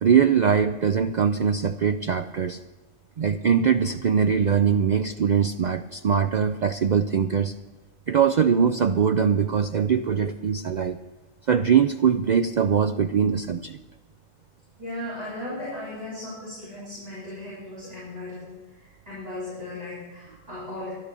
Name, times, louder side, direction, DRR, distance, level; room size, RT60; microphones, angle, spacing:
voice 1, 0.0-2.6 3.2-7.5 8.1-11.0 11.5-13.8, right 7 dB, 80° right, 9 dB, 0.4 m, -22 dB
voice 2, 14.8-20.9, left 1 dB, 30° right, -10 dB, 4.5 m, -37 dB
12.0 x 11.5 x 6.8 m, 1.2 s
omnidirectional pair, 1.4 m